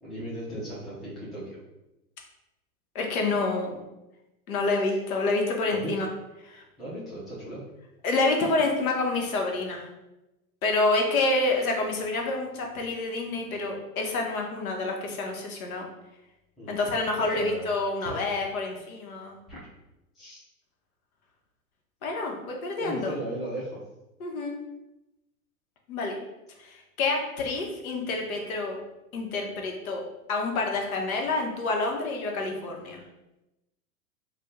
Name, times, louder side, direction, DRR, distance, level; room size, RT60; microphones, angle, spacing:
voice 1, 0.0-1.6 5.7-5.9 6.8-7.6 16.6-16.8 17.3-17.7 18.0-18.3 19.5-19.7 20.1-20.4 22.8-23.8, right 1 dB, ahead, -9 dB, 0.3 m, -37 dB
voice 2, 2.9-3.8 4.5-6.1 6.5-6.6 8.0-9.9 10.6-15.9 16.7-19.4 22.0-23.1 24.2-24.6 25.9-26.2 26.6-28.8 29.1-30.0 30.3-33.0, left 3 dB, 70° left, 1 dB, 0.9 m, -28 dB
2.6 x 2.2 x 3.5 m, 0.96 s
hypercardioid pair, 110°, 44 cm